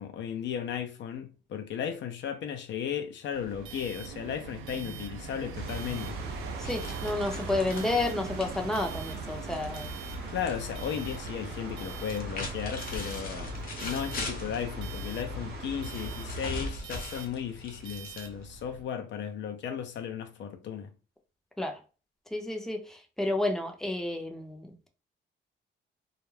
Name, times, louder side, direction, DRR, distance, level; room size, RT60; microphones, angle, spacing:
voice 1, 0.0-6.2 10.3-13.5 13.8-20.9, left 8 dB, 65° left, 0.5 m, -35 dB
sound 1, 3.3-18.8, right 6 dB, 90° right, 0.4 m, -43 dB
sound 2, 5.5-16.7, right 1 dB, 55° right, 0.9 m, -39 dB
sound 3, 6.6-10.6 10.8-11.4 12.0-14.7 15.9-18.6, left 2 dB, 45° left, 0.9 m, -40 dB
voice 2, 6.7-9.9 21.6-21.8 22.3-24.7, left 2 dB, ahead, 0.5 m, -31 dB
2.3 x 2.0 x 3.1 m
cardioid pair, 90°, 20 cm